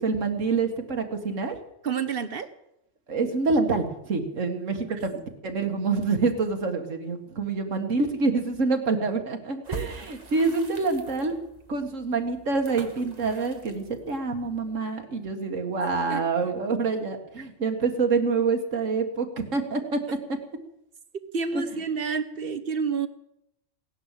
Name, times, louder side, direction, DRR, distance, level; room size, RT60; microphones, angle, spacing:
voice 1, 0.0-1.6 3.1-11.3 11.7-20.0 20.3-20.4 21.5-21.8, right 4 dB, 80° right, 4 dB, 2.1 m, -26 dB
voice 2, 1.8-2.5 16.1-16.2 21.3-23.1, right 5 dB, 50° right, 10 dB, 1.2 m, -28 dB
sound 1, 9.6-14.8, right 4 dB, 35° right, 1.7 m, -43 dB
17.0 x 10.5 x 7.4 m, 0.81 s
omnidirectional pair, 1.3 m